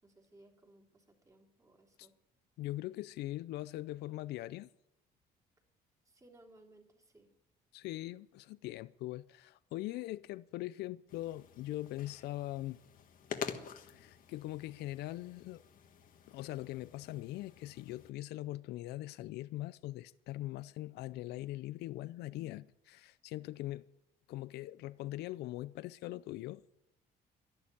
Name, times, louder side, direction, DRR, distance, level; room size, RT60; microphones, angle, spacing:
voice 1, 0.0-2.1 6.0-7.3, right 2 dB, 20° right, 3.4 m, -62 dB
voice 2, 2.6-4.7 7.7-12.8 13.9-15.6 16.3-23.9 24.3-26.6, left 16 dB, 75° left, 0.5 m, -41 dB
sound 1, 11.1-18.1, left 8 dB, 55° left, 1.5 m, -48 dB
12.0 x 11.5 x 8.6 m
cardioid pair, 110°, 17 cm